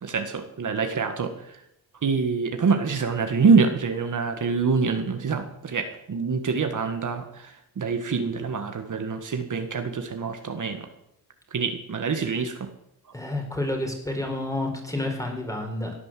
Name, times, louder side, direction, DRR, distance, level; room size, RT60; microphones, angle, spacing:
voice 1, 0.0-1.6 2.0-10.9 11.5-12.7, right 5 dB, 55° right, 6 dB, 1.7 m, -25 dB
voice 2, 13.1-15.9, left 1 dB, 10° left, 2 dB, 4.5 m, -29 dB
17.0 x 9.7 x 7.6 m, 0.78 s
wide cardioid pair, 110°, 37 cm